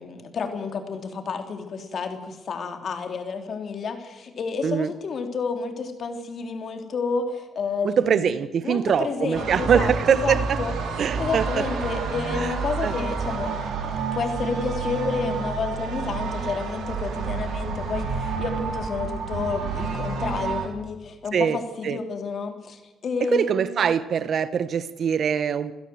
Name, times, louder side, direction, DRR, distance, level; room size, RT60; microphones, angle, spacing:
voice 1, 0.0-8.3 8.6-10.7 11.2-23.9, left 5 dB, 55° left, 6 dB, 3.7 m, -30 dB
voice 2, 7.8-10.6 11.0-11.7 12.4-12.5 12.8-12.9 21.3-21.6 21.8-22.0 23.2-25.7, right 7 dB, 60° right, 15 dB, 1.1 m, -23 dB
sound 1, 9.3-20.7, right 5 dB, 75° right, 4.2 m, -29 dB
27.5 x 16.0 x 8.0 m, 1.1 s
cardioid pair, 90°, 0 cm